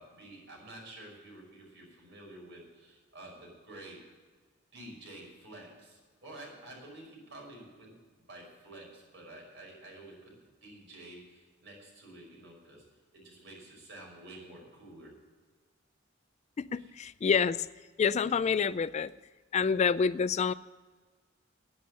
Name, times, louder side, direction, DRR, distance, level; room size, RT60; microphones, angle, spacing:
voice 1, 0.0-4.0 4.7-7.9 8.3-10.3 10.6-12.8 13.1-15.2 16.7-16.9, right 1 dB, 65° right, -1 dB, 5.5 m, -50 dB
voice 2, 16.7-17.6 18.0-19.1 19.5-20.5, left 6 dB, 35° left, 17 dB, 0.3 m, -27 dB
10.5 x 9.7 x 8.9 m, 1.4 s
head